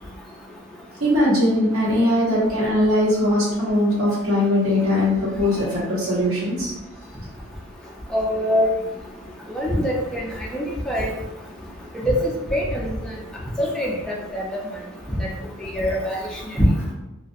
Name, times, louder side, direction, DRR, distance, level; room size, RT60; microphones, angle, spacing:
voice 1, 1.0-6.7, left 1 dB, 85° right, -8 dB, 1.2 m, -20 dB
voice 2, 8.1-8.7 9.5-10.2 10.5-11.1 12.0-12.2 12.5-12.9 13.6-14.4 15.6-16.2 16.6-16.7, equal, 5° left, -3 dB, 0.3 m, -23 dB
2.4 x 2.2 x 2.5 m, 0.98 s
head